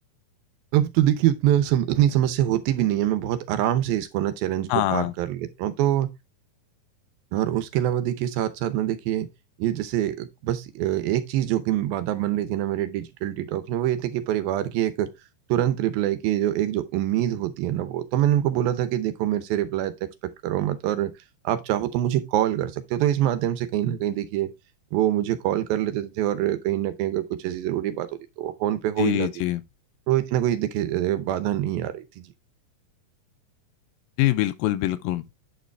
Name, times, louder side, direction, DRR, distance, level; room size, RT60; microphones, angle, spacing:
voice 1, 0.7-6.1 7.3-9.3 9.6-15.1 15.5-19.9 20.4-21.1 21.4-24.5 24.9-28.1 28.4-29.3 30.1-32.3, right 12 dB, 85° right, 2.7 m, -24 dB
voice 2, 4.7-5.1 29.0-29.6 34.2-35.2, left 15 dB, 85° left, 2.5 m, -24 dB
8.9 x 5.1 x 3.4 m
omnidirectional pair, 4.1 m